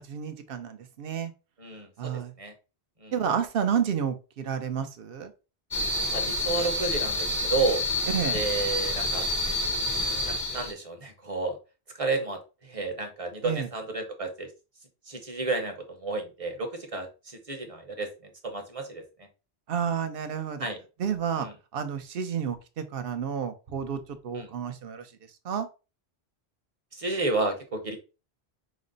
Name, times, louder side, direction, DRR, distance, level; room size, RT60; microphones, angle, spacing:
voice 1, 0.0-1.3 2.0-2.3 3.1-5.3 8.1-8.4 13.4-13.7 19.7-20.7 21.0-21.5 21.7-25.1 25.4-25.7, right 7 dB, 65° right, 9 dB, 0.8 m, -30 dB
voice 2, 1.6-2.1 2.4-2.5 3.0-3.1 6.1-7.8 8.3-9.3 10.1-11.6 12.0-14.5 15.1-18.1 18.4-19.3 20.6-20.8 21.4-21.5 24.3-24.5 26.9-28.0, right 3 dB, 35° right, 5 dB, 0.9 m, -31 dB
sound 1, 5.7-10.7, left 1 dB, 25° left, 0.5 m, -28 dB
5.2 x 2.1 x 3.8 m, 0.31 s
omnidirectional pair, 1.1 m